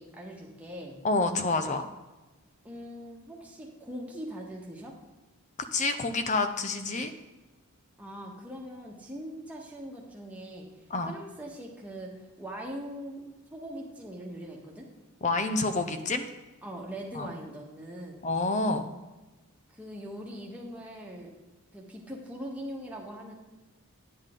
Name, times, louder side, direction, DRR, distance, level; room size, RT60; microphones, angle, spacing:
voice 1, 0.0-0.9 2.6-4.9 8.0-10.7 11.0-12.1 12.4-13.2 13.5-14.9 16.6-18.3 19.7-21.3 21.7-23.3, equal, 5° right, -2 dB, 1.5 m, -41 dB
voice 2, 1.0-1.8 5.7-7.1 10.9-11.1 15.2-16.3 17.1-17.3 18.2-18.9, left 3 dB, 30° left, 8 dB, 0.7 m, -28 dB
9.9 x 8.6 x 3.8 m, 1.1 s
head